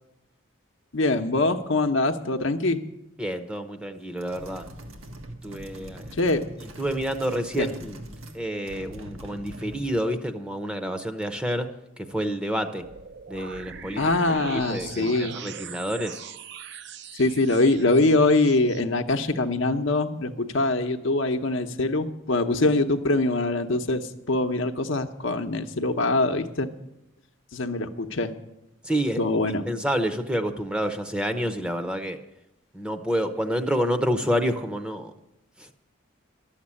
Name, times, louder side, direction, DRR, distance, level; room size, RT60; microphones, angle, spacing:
voice 1, 0.9-2.8 6.1-6.4 7.6-7.7 14.0-15.4 17.1-26.7 27.5-28.3 29.2-29.6, left 2 dB, 65° left, 6 dB, 0.8 m, -23 dB
voice 2, 3.2-4.7 5.4-6.1 6.8-8.0 8.3-11.7 12.0-12.9 13.3-14.1 14.5-16.2 28.8-29.2 29.5-32.2 32.7-35.1 35.6-35.7, equal, 5° right, 8 dB, 0.7 m, -28 dB
sound 1, 4.2-8.4 8.7-10.0, right 1 dB, 90° right, 1.6 m, -42 dB
sound 2, 12.8-18.8, right 7 dB, 55° right, 0.6 m, -41 dB
12.5 x 7.3 x 9.8 m, 0.89 s
head